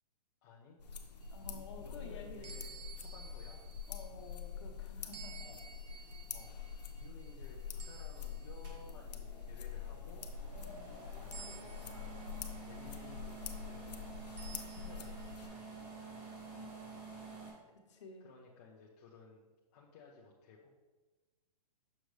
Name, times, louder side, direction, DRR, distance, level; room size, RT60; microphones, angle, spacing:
voice 1, 0.4-0.8 1.5-3.7 5.4-6.6 6.9-10.3 11.2-15.9 18.2-20.8, left 4 dB, 25° left, -3 dB, 0.4 m, -57 dB
sound 1, 0.8-15.5, left 7 dB, 85° left, 0.7 m, -46 dB
sound 2, 1.2-4.6 5.1-9.1 9.6-9.9 11.3-13.4 14.4-16.3, right 7 dB, 90° right, 0.6 m, -56 dB
voice 2, 1.3-2.5 3.9-5.5 10.5-10.8 15.9-16.2 16.5-17.0 17.7-18.3, left 3 dB, 45° left, 1 dB, 1.0 m, -52 dB
sound 3, 8.6-17.5, right 4 dB, 30° right, 1.6 m, -50 dB
6.4 x 5.0 x 3.1 m, 1.2 s
hypercardioid pair, 165°, 21 cm